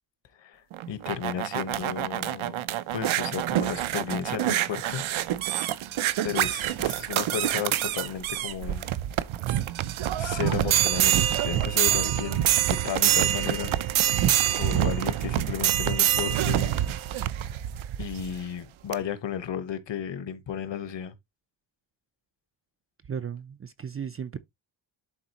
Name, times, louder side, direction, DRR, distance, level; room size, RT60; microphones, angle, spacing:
voice 1, 0.4-2.6 2.9-5.0 5.5-5.6 6.2-8.9 10.2-13.7 14.0-14.2 14.5-16.7 17.4-17.5 18.0-21.1, left 9 dB, 65° left, 1.2 m, -34 dB
sound 1, 0.7-18.4 18.9-19.0, right 12 dB, 80° right, 0.7 m, -26 dB
voice 2, 23.1-24.4, right 7 dB, 30° right, 0.4 m, -35 dB
11.5 x 4.1 x 2.9 m
wide cardioid pair, 175°, 47 cm